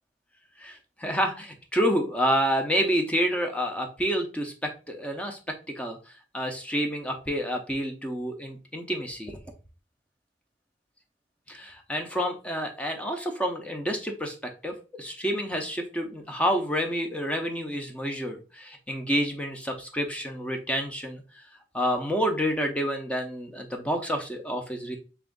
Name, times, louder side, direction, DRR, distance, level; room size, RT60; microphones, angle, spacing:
voice 1, 0.6-6.0 6.3-9.4 11.5-21.5 21.7-25.0, equal, 5° left, 4 dB, 0.6 m, -29 dB
3.4 x 3.0 x 3.7 m, 0.33 s
head